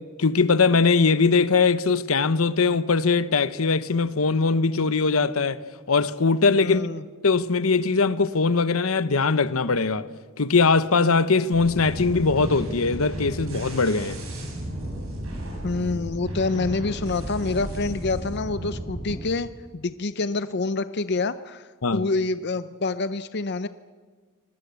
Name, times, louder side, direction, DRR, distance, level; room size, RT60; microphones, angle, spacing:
voice 1, 0.2-5.6 5.9-6.8 7.2-10.1 10.4-14.2 21.8-22.0, left 4 dB, 80° left, 1.0 m, -21 dB
voice 2, 6.6-7.0 15.6-23.7, left 3 dB, 50° left, 0.6 m, -27 dB
sound 1, 11.5-19.2, right 1 dB, 75° right, 7.8 m, -34 dB
24.5 x 20.0 x 8.3 m
head